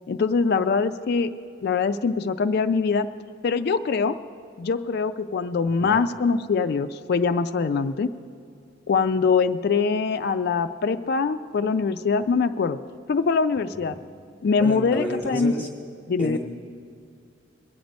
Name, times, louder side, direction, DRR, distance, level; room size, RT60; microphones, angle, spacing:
voice 1, 0.1-1.3 1.6-3.1 3.4-4.2 4.6-8.1 8.9-12.8 13.1-14.0 14.4-15.5 16.1-16.4, left 5 dB, 55° left, 10 dB, 0.4 m, -23 dB
voice 2, 14.6-15.7 16.2-16.4, equal, 10° left, -1 dB, 1.0 m, -31 dB
21.5 x 8.0 x 5.2 m, 2.3 s
head